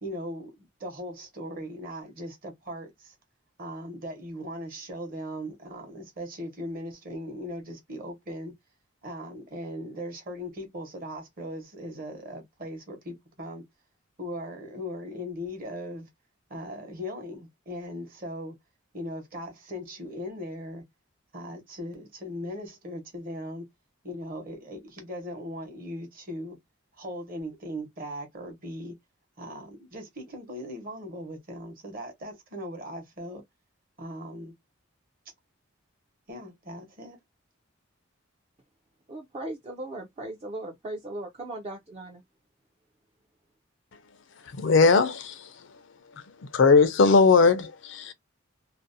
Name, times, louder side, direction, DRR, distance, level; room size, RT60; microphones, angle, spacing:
voice 1, 0.0-3.1 3.6-8.5 9.0-13.6 14.2-16.1 16.5-18.6 18.9-20.8 21.3-23.7 24.0-26.6 27.0-28.9 29.4-33.4 34.0-34.5 36.3-37.2, equal, 45° right, 0.9 m, -38 dB
voice 2, 39.1-42.2, right 2 dB, 30° right, 0.4 m, -37 dB
voice 3, 44.5-45.4 46.5-48.1, left 4 dB, 60° left, 0.4 m, -19 dB
2.5 x 2.0 x 2.5 m
head